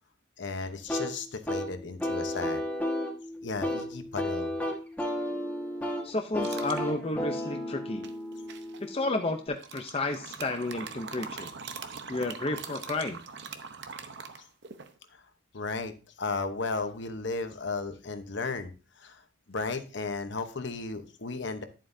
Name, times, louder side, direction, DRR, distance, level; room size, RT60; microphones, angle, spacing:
voice 1, 0.4-2.6 3.4-4.5 15.1-15.2 15.5-15.9 16.2-19.2 19.5-21.6, left 3 dB, 60° left, 8 dB, 0.9 m, -34 dB
sound 1, 0.9-9.5, left 1 dB, 10° left, 1.5 m, -33 dB
voice 2, 6.0-8.0 8.8-11.5 12.1-13.2, left 2 dB, 30° left, 5 dB, 0.6 m, -32 dB
sound 2, 6.4-6.9 8.0-8.8 9.6-14.9, right 5 dB, 60° right, 0.8 m, -42 dB
11.0 x 7.5 x 2.7 m, 0.33 s
head